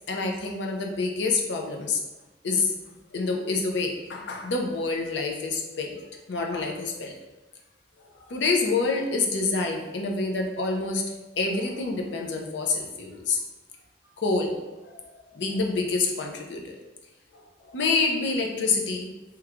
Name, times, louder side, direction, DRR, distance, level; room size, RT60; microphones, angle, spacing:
voice 1, 0.1-2.0 2.4-2.7 3.1-6.0 6.3-7.1 8.2-11.0 11.4-13.4 14.2-16.8 17.3-19.1, left 3 dB, 75° left, 1 dB, 0.5 m, -27 dB
3.0 x 2.3 x 3.6 m, 1.1 s
head